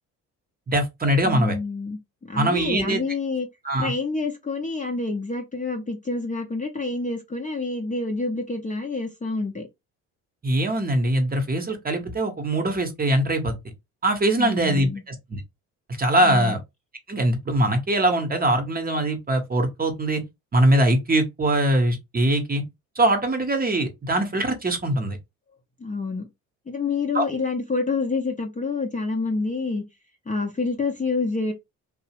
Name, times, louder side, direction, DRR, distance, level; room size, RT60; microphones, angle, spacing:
voice 1, 0.7-1.6 2.3-3.0 3.6-3.9 10.4-13.6 14.0-15.4 16.0-16.6 17.1-20.2 20.5-22.6 23.0-25.2 27.1-27.2, right 1 dB, 25° right, 0.8 m, -22 dB
voice 2, 1.2-3.5 3.8-9.7 14.4-15.0 16.2-16.6 25.8-26.3 26.7-29.8 30.3-31.5, left 3 dB, 20° left, 0.6 m, -28 dB
2.6 x 2.0 x 2.9 m
hypercardioid pair, 60°, 38 cm